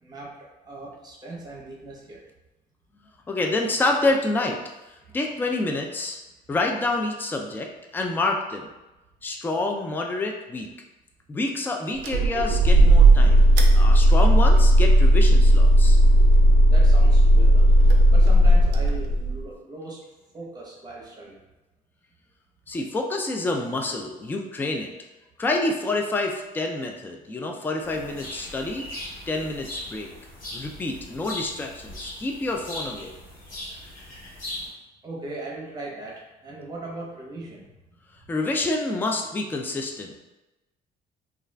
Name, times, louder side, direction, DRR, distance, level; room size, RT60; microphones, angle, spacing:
voice 1, 0.0-2.2 16.7-17.8 18.1-20.0 20.3-21.4 35.0-37.7, right 2 dB, 25° right, -3 dB, 0.8 m, -39 dB
voice 2, 3.3-4.6 5.1-6.2 6.5-8.7 9.2-10.7 11.3-13.4 13.7-16.0 22.7-24.9 25.4-28.9 29.3-30.1 30.5-33.1 38.3-40.2, left 2 dB, 10° left, 2 dB, 0.3 m, -27 dB
sound 1, 12.0-19.4, right 1 dB, 85° right, 0.4 m, -15 dB
sound 2, 27.8-34.7, left 1 dB, 55° left, 1.4 m, -39 dB
2.4 x 2.3 x 3.2 m, 1.0 s
cardioid pair, 110°, 17 cm